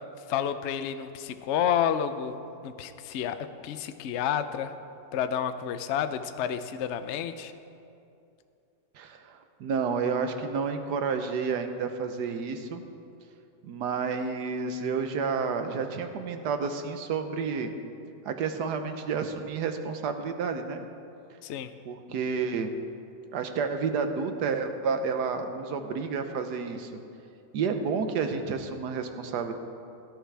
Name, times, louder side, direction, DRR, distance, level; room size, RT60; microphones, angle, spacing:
voice 1, 0.3-4.7 5.1-7.5 21.4-21.7, left 8 dB, 80° left, 10 dB, 0.6 m, -30 dB
voice 2, 8.9-12.8 13.6-17.7 18.2-20.8 21.9-22.7 23.3-26.9 27.5-29.5, right 5 dB, 70° right, 7 dB, 1.4 m, -30 dB
17.5 x 11.5 x 3.4 m, 2.6 s
omnidirectional pair, 1.9 m